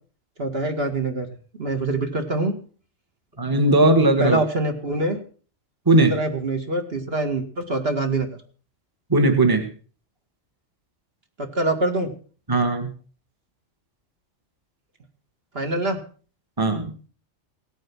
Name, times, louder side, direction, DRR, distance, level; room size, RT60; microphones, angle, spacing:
voice 1, 0.4-1.3 1.6-2.5 4.2-5.2 5.9-8.4 11.4-12.1 15.5-16.0, right 2 dB, 50° right, 5 dB, 2.2 m, -24 dB
voice 2, 3.4-4.4 5.8-6.1 9.1-9.7 12.5-12.9 16.6-16.9, right 2 dB, 15° right, 6 dB, 1.6 m, -18 dB
17.0 x 9.2 x 6.1 m, 0.41 s
omnidirectional pair, 1.4 m